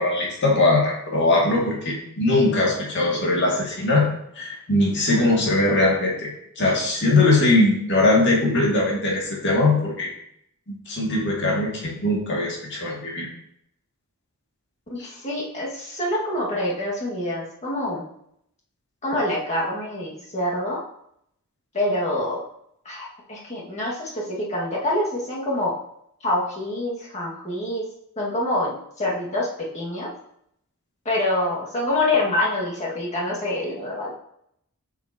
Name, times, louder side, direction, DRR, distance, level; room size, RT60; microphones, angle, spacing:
voice 1, 0.0-4.1 4.4-6.3 6.6-10.1 10.9-13.3 15.0-15.1, left 2 dB, 55° left, -2 dB, 2.0 m, -21 dB
voice 2, 14.9-18.0 19.0-20.8 21.7-22.4 22.9-25.7 26.2-27.9 28.2-30.1 31.1-34.2, left 1 dB, 30° left, -4 dB, 1.7 m, -26 dB
7.8 x 6.1 x 2.8 m, 0.73 s
head